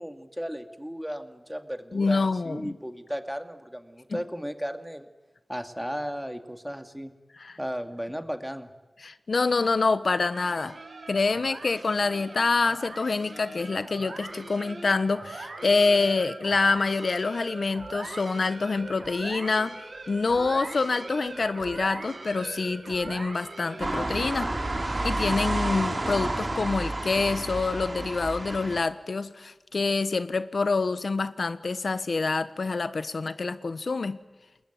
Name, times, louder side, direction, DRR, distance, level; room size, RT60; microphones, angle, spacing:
voice 1, 0.0-5.1 5.5-7.1 7.6-8.7, equal, 5° right, 7 dB, 2.3 m, -35 dB
voice 2, 1.9-2.8 4.1-4.2 7.3-7.6 9.0-10.8 11.1-24.5 25.0-34.2, left 4 dB, 80° left, 13 dB, 1.2 m, -26 dB
sound 1, 10.3-25.4, right 3 dB, 90° right, 4.2 m, -41 dB
sound 2, 23.8-28.8, right 2 dB, 50° right, 6.4 m, -30 dB
28.5 x 21.0 x 9.4 m, 1.2 s
wide cardioid pair, 60°, 0 cm